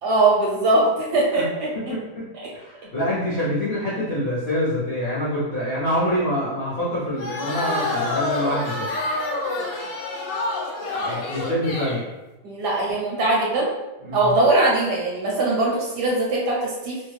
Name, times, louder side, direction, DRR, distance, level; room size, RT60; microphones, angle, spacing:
voice 1, 0.0-1.9 2.3-2.5 12.4-13.7 14.1-17.1, right 2 dB, 70° right, -3 dB, 1.1 m, -21 dB
voice 2, 1.9-2.3 2.5-8.9 10.9-12.0 14.0-14.3, equal, 55° left, -11 dB, 0.6 m, -26 dB
sound 1, 7.2-12.0, left 2 dB, 75° left, 1.2 m, -27 dB
3.1 x 2.2 x 3.1 m, 1.0 s
omnidirectional pair, 2.1 m